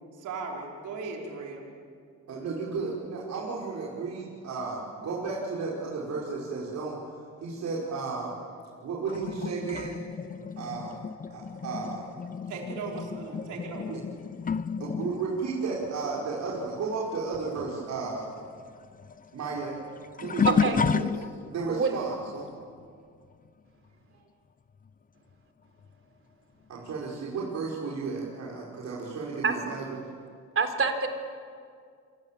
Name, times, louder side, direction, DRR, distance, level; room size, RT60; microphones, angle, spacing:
voice 1, 0.1-1.7 12.5-13.9, right 4 dB, 80° right, -1 dB, 5.0 m, -37 dB
voice 2, 2.3-7.0 7.4-8.4 8.8-10.0 10.6-11.0 11.3-12.1 13.9-14.0 14.8-18.2 19.3-19.8 20.2-22.5 26.7-30.0, right 4 dB, 65° right, -5 dB, 5.4 m, -33 dB
sound 1, 9.1-17.1 17.3-21.7 22.3-22.6 24.9-25.0 25.8-25.9, left 6 dB, 30° left, 0.7 m, -32 dB
voice 3, 20.5-20.8 21.7-21.9 29.4-29.5 30.6-31.1, right 5 dB, 45° right, 6 dB, 3.9 m, -25 dB
29.5 x 24.5 x 7.6 m, 2.2 s
cardioid pair, 90°, 30 cm